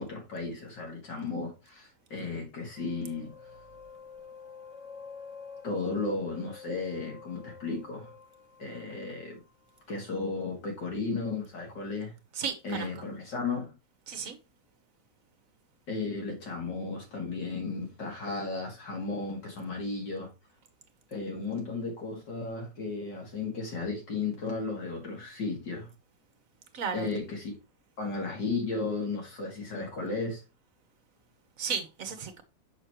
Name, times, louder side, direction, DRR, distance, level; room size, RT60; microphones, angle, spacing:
voice 1, 0.0-3.3 5.6-8.1 8.6-9.4 9.9-12.1 12.6-13.7 15.9-20.3 21.1-25.9 26.9-27.5 28.0-30.4, left 3 dB, 70° left, 2.8 m, -34 dB
sound 1, 2.7-10.0, left 5 dB, 25° left, 1.0 m, -48 dB
voice 2, 12.3-12.9 14.1-14.4 26.7-27.1 31.6-32.4, right 6 dB, 55° right, 1.3 m, -34 dB
6.6 x 6.2 x 3.0 m
omnidirectional pair, 1.9 m